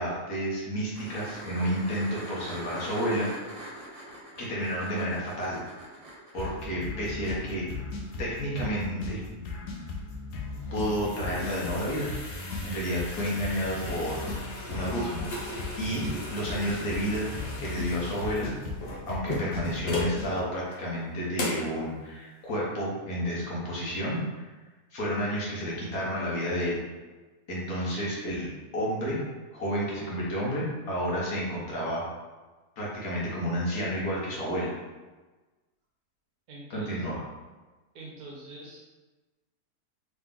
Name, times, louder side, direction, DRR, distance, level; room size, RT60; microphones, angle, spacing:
voice 1, 0.0-3.3 4.4-5.6 6.3-7.6 8.2-9.2 10.7-12.1 12.6-14.3 14.7-15.2 15.8-17.3 17.6-18.6 19.1-24.5 24.9-26.8 27.5-28.5 28.7-29.2 29.5-32.0 32.8-34.7 36.7-37.2, equal, 65° left, -5 dB, 1.5 m, -31 dB
sound 1, 0.9-6.5 9.2-9.3, right 1 dB, 50° right, 1.5 m, -43 dB
sound 2, 6.4-20.4, left 3 dB, 80° left, 1.2 m, -37 dB
sound 3, 10.4-20.2 20.7-20.8 21.3-21.7, left 1 dB, 45° left, 0.8 m, -37 dB
voice 2, 36.5-37.1 37.9-38.9, right 2 dB, 70° right, -3 dB, 1.4 m, -44 dB
3.9 x 3.0 x 3.7 m, 1.2 s
omnidirectional pair, 1.7 m